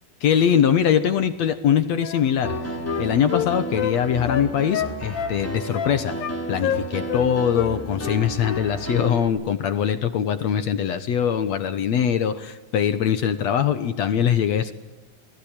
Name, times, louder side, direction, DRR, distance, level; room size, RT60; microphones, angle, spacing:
voice 1, 0.2-2.5 3.0-6.2 6.5-14.7, left 8 dB, 65° left, 10 dB, 1.9 m, -22 dB
Wind instrument woodwind instrument, 2.0-4.0 4.3-5.4 5.7-6.4 6.6-7.3 7.5-7.7 8.0-8.6 8.9-9.1, left 10 dB, 80° left, 3.2 m, -28 dB
Piano, 2.4-9.3, right 2 dB, 5° left, 4.2 m, -32 dB
28.5 x 20.5 x 8.9 m, 1.2 s
omnidirectional pair, 4.2 m